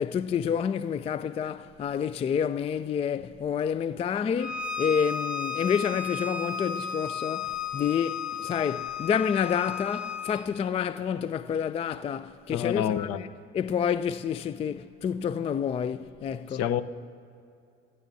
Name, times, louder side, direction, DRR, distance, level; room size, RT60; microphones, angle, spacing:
voice 1, 0.0-13.3 13.5-16.6, left 7 dB, 20° left, 0.3 m, -29 dB
Bowed string instrument, 4.4-10.4, left 6 dB, 5° right, 1.2 m, -34 dB
voice 2, 12.5-13.2 16.5-16.8, left 10 dB, 50° left, 0.8 m, -27 dB
25.5 x 14.5 x 2.7 m
hypercardioid pair, 75°, 30 cm